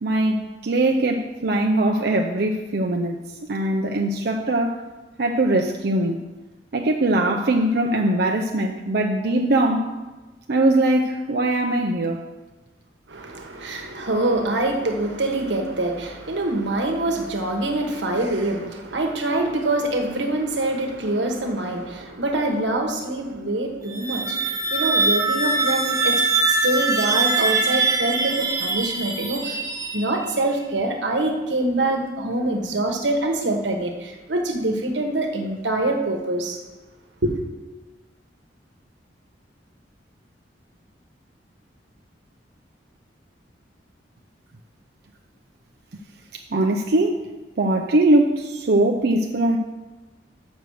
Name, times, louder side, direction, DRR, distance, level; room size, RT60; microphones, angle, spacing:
voice 1, 0.0-3.2 3.5-4.8 5.2-6.2 6.7-9.9 10.5-12.2 46.3-47.2 47.6-49.6, right 1 dB, 60° right, 1 dB, 0.6 m, -21 dB
voice 2, 13.1-24.4 24.7-26.2 26.5-29.6 29.9-36.6 37.2-37.3, right 2 dB, 90° right, 3 dB, 1.2 m, -25 dB
sound 1, 23.8-30.5, right 3 dB, 20° right, 1.0 m, -23 dB
6.8 x 6.2 x 6.3 m, 1.2 s
head